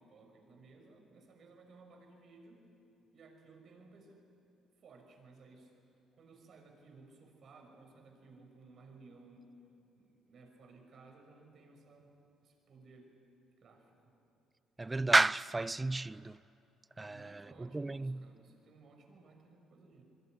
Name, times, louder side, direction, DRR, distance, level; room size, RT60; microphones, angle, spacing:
voice 1, 0.0-2.7 3.1-4.3 4.8-5.7 6.1-9.5 9.9-12.1 12.4-13.1 13.6-14.1 17.1-20.0, right 3 dB, 55° right, 6.1 m, -58 dB
voice 2, 14.8-16.4 17.0-18.2, right 2 dB, 20° right, 0.6 m, -31 dB
26.5 x 23.5 x 9.4 m
hypercardioid pair, 55°, 0 cm